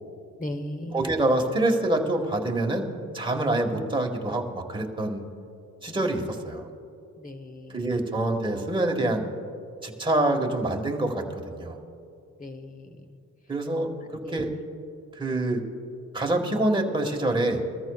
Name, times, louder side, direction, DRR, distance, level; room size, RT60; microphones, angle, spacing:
voice 1, 0.4-1.1 7.2-8.0 12.4-13.2 13.8-13.9 14.3-14.5, left 1 dB, 25° left, 8 dB, 1.1 m, -38 dB
voice 2, 0.9-2.9 3.1-5.2 5.8-6.7 7.7-9.3 9.8-11.8 13.5-14.5 15.1-15.6 16.1-17.6, right 2 dB, 15° right, 1 dB, 1.7 m, -26 dB
22.5 x 13.5 x 2.4 m, 2.5 s
cardioid pair, 90°, 30 cm